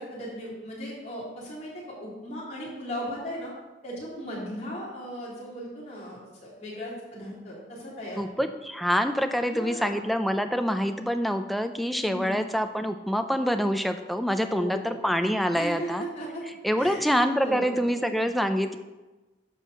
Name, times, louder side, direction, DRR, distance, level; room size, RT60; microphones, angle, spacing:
voice 1, 0.0-3.5 3.8-8.4 9.4-10.0 12.0-12.4 14.4-15.0 15.5-16.4 16.8-17.0 17.4-17.8, equal, 40° left, -6 dB, 3.8 m, -37 dB
voice 2, 8.2-16.0 16.6-18.8, equal, ahead, 7 dB, 0.5 m, -26 dB
11.0 x 4.8 x 7.0 m, 1.1 s
head